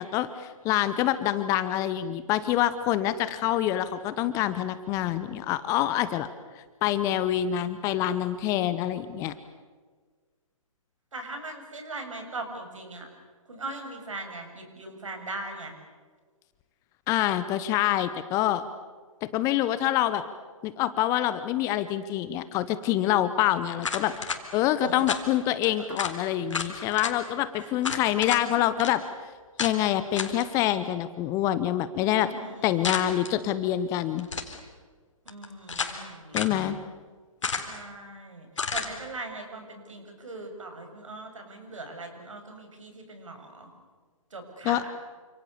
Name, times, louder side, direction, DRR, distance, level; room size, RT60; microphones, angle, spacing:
voice 1, 0.0-6.3 6.6-9.3 17.1-18.6 19.2-20.2 20.6-29.0 29.6-32.3 32.6-34.3 36.3-36.8 44.6-44.8, left 12 dB, 15° left, 13 dB, 0.8 m, -26 dB
voice 2, 11.1-13.1 13.5-15.8 24.8-25.0 27.6-27.7 32.2-33.3 35.2-36.7 37.7-43.7 44.3-44.9, right 2 dB, 60° right, 5 dB, 7.0 m, -40 dB
sound 1, 23.8-24.4 25.1-25.3 25.6-25.7 26.0-26.2 26.5-27.1 27.8-28.4 28.8-28.9 29.6-29.8 30.2-30.4 32.8-33.3 34.2-34.6 35.3-36.0 36.3-36.6 37.4-37.8 38.6-38.9, left 5 dB, 60° left, 3.8 m, -31 dB
29.0 x 27.0 x 7.1 m, 1.5 s
figure-of-eight pair, 130°, 18 cm